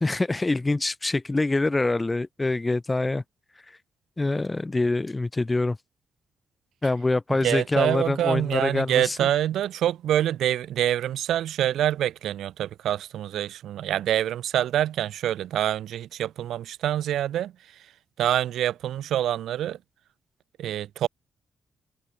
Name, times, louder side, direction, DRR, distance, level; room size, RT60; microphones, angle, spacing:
voice 1, 0.0-3.2 4.2-5.8 6.8-9.3, left 2 dB, 20° left, 0.7 m, -25 dB
voice 2, 7.4-17.5 18.2-19.8 20.6-21.1, right 11 dB, 85° right, 1.0 m, -26 dB
cardioid pair, 95°, 0 cm